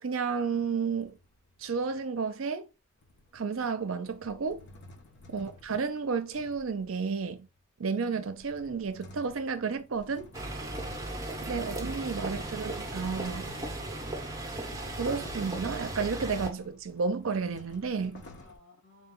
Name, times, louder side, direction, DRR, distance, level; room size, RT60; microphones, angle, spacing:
voice 1, 0.0-1.2 1.6-2.7 3.3-4.6 5.3-7.5 7.8-10.3 11.5-13.5 15.0-18.2, right 5 dB, 70° right, 0.6 m, -32 dB
sound 1, 0.7-2.0 3.0-7.6 8.1-18.6, left 2 dB, 55° left, 0.8 m, -53 dB
voice 2, 5.2-5.5 18.4-19.1, left 3 dB, 70° left, 2.1 m, -60 dB
Side Street City Traffic Footsteps London, 10.3-16.5, right 1 dB, 15° right, 1.0 m, -36 dB
4.1 x 2.2 x 3.7 m
head